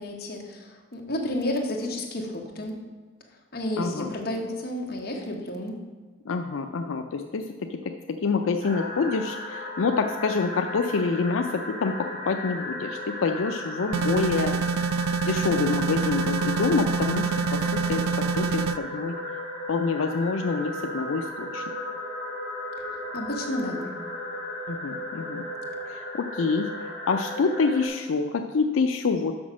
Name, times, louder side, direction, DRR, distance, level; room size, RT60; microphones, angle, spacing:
voice 1, 0.0-2.8 3.5-5.8 23.1-23.9, left 1 dB, 50° left, 0 dB, 1.2 m, -31 dB
voice 2, 3.8-4.1 6.3-14.6 15.2-19.1 19.7-21.6 24.7-25.5 25.8-29.3, left 4 dB, 90° left, 5 dB, 0.4 m, -27 dB
sound 1, 8.6-27.9, left 1 dB, 35° right, 2.5 m, -35 dB
sound 2, 13.9-18.8, right 5 dB, 80° right, 0.3 m, -26 dB
6.1 x 6.0 x 6.1 m, 1.3 s
head